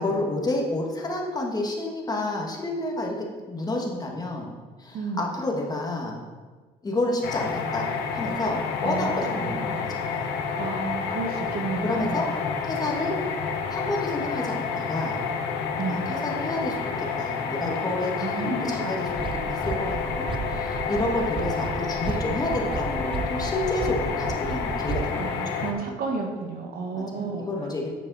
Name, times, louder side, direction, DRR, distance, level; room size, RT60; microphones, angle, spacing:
voice 1, 0.0-4.5 4.8-6.2 6.8-10.3 11.8-12.3 12.6-13.2 13.7-15.2 15.8-25.4 26.9-27.9, left 2 dB, 20° left, -1 dB, 1.5 m, -30 dB
voice 2, 4.9-5.3 8.8-9.6 10.4-12.2 15.7-16.1 18.2-18.9 25.1-27.5, right 4 dB, 65° right, 2 dB, 1.5 m, -32 dB
sound 1, 7.2-25.7, left 5 dB, 80° left, 0.9 m, -29 dB
sound 2, 19.1-25.1, right 6 dB, 30° right, 0.3 m, -34 dB
9.3 x 5.4 x 4.1 m, 1.4 s
cardioid pair, 110°, 17 cm